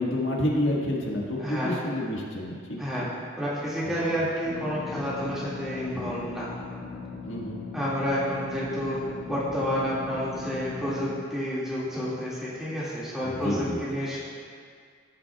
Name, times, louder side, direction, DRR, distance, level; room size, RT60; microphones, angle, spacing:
voice 1, 0.0-3.1 7.3-7.6 13.2-14.0, left 1 dB, 90° left, -3 dB, 1.6 m, -29 dB
voice 2, 1.4-1.8 2.8-3.1 3.4-6.5 7.7-14.2, equal, 5° right, -9 dB, 2.0 m, -30 dB
sound 1, 4.4-11.2, left 4 dB, 25° left, 2.0 m, -39 dB
16.0 x 7.6 x 2.3 m, 2.1 s
head